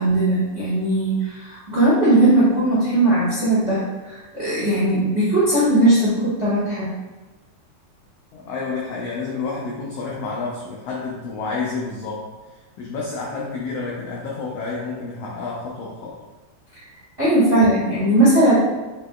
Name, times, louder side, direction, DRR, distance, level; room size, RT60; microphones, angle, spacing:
voice 1, 0.0-6.9 17.2-18.5, right 1 dB, 45° right, -9 dB, 0.8 m, -18 dB
voice 2, 8.3-12.2 12.5-16.2, left 4 dB, 85° left, -4 dB, 1.4 m, -29 dB
6.2 x 2.8 x 2.3 m, 1.2 s
omnidirectional pair, 3.4 m